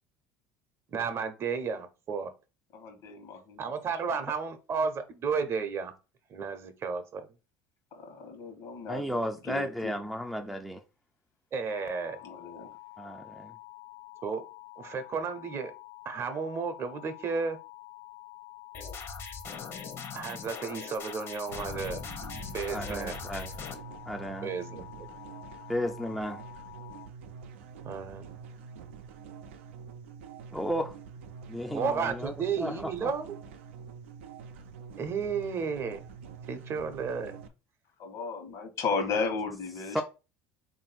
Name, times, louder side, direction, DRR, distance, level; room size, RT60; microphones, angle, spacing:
voice 1, 0.9-2.3 3.6-5.9 6.3-7.3 11.5-12.2 14.2-14.4 14.8-15.7 16.0-17.6 20.1-22.0 22.5-23.2 24.4-25.1 27.8-28.3 31.7-33.4 35.0-36.0 36.5-37.4, right 5 dB, 45° right, 0.7 m, -33 dB
voice 2, 2.7-3.7 7.9-9.9 12.2-12.8 38.0-40.0, left 4 dB, 60° left, 1.2 m, -35 dB
voice 3, 8.9-10.8 13.0-13.5 22.7-23.5 24.1-24.5 25.7-26.4 30.5-30.9 31.5-33.1 39.9-40.0, equal, ahead, 0.4 m, -34 dB
sound 1, 11.7-27.1, left 19 dB, 85° left, 0.4 m, -49 dB
sound 2, 18.7-23.7, left 5 dB, 45° left, 0.8 m, -40 dB
sound 3, 21.5-37.5, right 6 dB, 90° right, 0.5 m, -46 dB
3.6 x 2.6 x 4.1 m
supercardioid pair, 90°, 6 cm